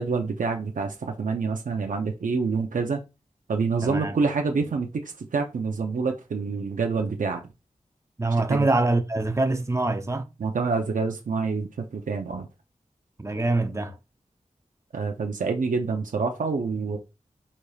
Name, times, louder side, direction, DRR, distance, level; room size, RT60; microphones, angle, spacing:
voice 1, 0.0-3.0 3.5-7.4 8.5-8.7 10.4-12.5 14.9-17.0, right 4 dB, 85° right, 0.6 m, -27 dB
voice 2, 3.8-4.2 8.2-10.3 13.2-14.0, right 2 dB, 20° right, 0.6 m, -24 dB
4.9 x 4.1 x 2.3 m
wide cardioid pair, 90°, 13 cm